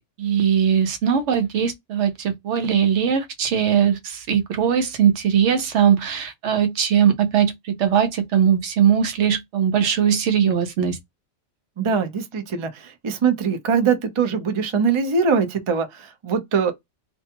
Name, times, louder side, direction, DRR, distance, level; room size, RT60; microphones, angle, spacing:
voice 1, 0.2-11.0, right 8 dB, 70° right, 0.9 m, -20 dB
voice 2, 11.8-16.7, right 6 dB, 40° right, 0.4 m, -22 dB
2.5 x 2.2 x 2.8 m
omnidirectional pair, 1.3 m